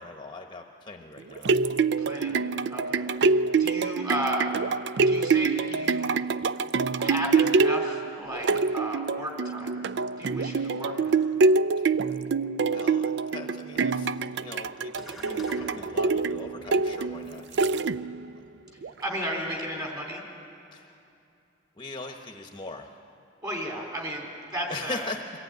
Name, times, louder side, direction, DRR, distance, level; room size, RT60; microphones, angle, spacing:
voice 1, 0.0-1.6 11.8-12.0 12.7-17.9 20.7-21.0 21.8-23.0 24.7-25.2, left 3 dB, 25° left, 3 dB, 0.9 m, -41 dB
sound 1, 1.2-18.3 18.8-18.9, right 4 dB, 65° right, 0.4 m, -25 dB
voice 2, 2.0-2.4 2.7-4.5 4.9-6.4 7.0-9.8 10.2-11.2 19.0-20.2 23.4-25.1, equal, 20° right, -1 dB, 3.7 m, -34 dB
sound 2, 15.0-19.6, left 1 dB, ahead, 1.3 m, -47 dB
23.5 x 14.5 x 9.2 m, 2.6 s
head